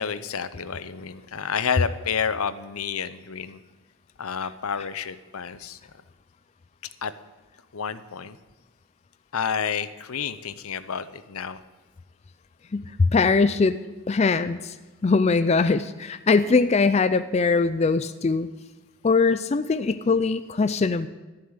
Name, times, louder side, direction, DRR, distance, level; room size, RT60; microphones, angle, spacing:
voice 1, 0.0-3.6 4.2-5.8 7.0-7.1 7.7-8.4 9.3-11.6, left 7 dB, 85° left, 14 dB, 0.7 m, -30 dB
voice 2, 12.7-13.8 14.1-14.7 15.0-18.5 19.0-21.1, left 4 dB, 30° left, 12 dB, 0.4 m, -21 dB
13.0 x 7.4 x 8.8 m, 1.2 s
head